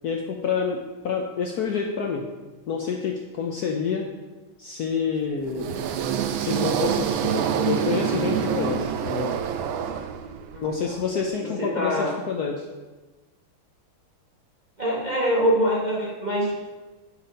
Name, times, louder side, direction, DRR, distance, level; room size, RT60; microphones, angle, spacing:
voice 1, 0.0-2.3 2.7-4.1 4.6-5.7 6.4-9.3 10.6-12.7, left 6 dB, 65° left, 2 dB, 1.0 m, -28 dB
sound 1, 5.5-10.6, right 8 dB, 75° right, 1.4 m, -26 dB
voice 2, 10.5-11.0 11.4-12.2 14.8-16.7, equal, 30° right, -3 dB, 0.9 m, -25 dB
11.5 x 4.7 x 5.1 m, 1.2 s
omnidirectional pair, 2.3 m